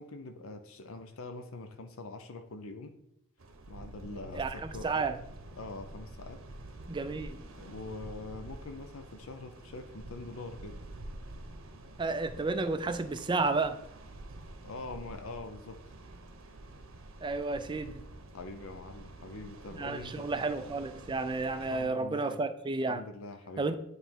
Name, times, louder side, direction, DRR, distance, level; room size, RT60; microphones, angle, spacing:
voice 1, 0.0-3.0 3.7-5.1 5.6-6.4 7.5-10.7 14.6-15.8 18.3-20.3 21.6-22.4 22.9-23.8, left 3 dB, 70° left, 0.6 m, -44 dB
sound 1, 3.4-21.9, right 1 dB, 65° right, 0.8 m, -48 dB
voice 2, 4.3-5.2 6.9-7.4 12.0-13.8 17.2-18.0 19.7-23.0 23.6-23.8, right 3 dB, 20° right, 0.4 m, -32 dB
9.3 x 3.3 x 4.4 m
head